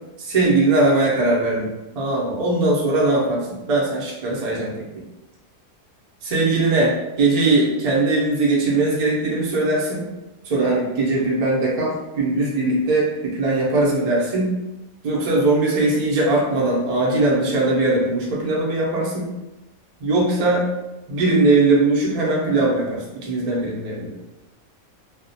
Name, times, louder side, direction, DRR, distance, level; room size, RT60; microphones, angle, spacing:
voice 1, 0.2-5.0 6.2-10.1 10.5-14.6 15.0-19.3 20.0-20.7 21.1-24.1, right 2 dB, 45° right, -4 dB, 0.5 m, -20 dB
2.3 x 2.1 x 2.6 m, 0.98 s
omnidirectional pair, 1.4 m